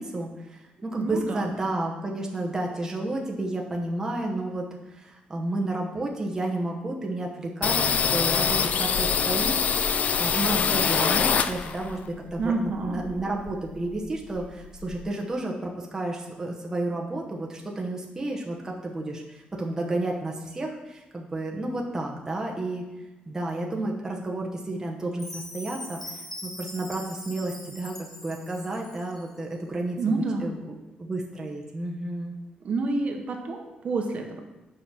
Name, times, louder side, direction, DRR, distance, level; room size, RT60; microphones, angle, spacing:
voice 1, 0.0-22.9 23.3-28.0 28.2-32.3, right 2 dB, 20° right, -1 dB, 1.0 m, -31 dB
voice 2, 1.0-1.5 12.4-13.0 30.0-30.5 32.6-34.4, right 3 dB, 45° right, 3 dB, 1.1 m, -28 dB
sound 1, 7.6-12.0 12.3-13.7 14.0-14.1 14.3-15.0, left 6 dB, 50° left, 0.4 m, -25 dB
Chime, 25.2-29.3, left 1 dB, 10° left, 1.0 m, -42 dB
6.8 x 5.1 x 5.9 m, 1.1 s
cardioid pair, 135°, 3 cm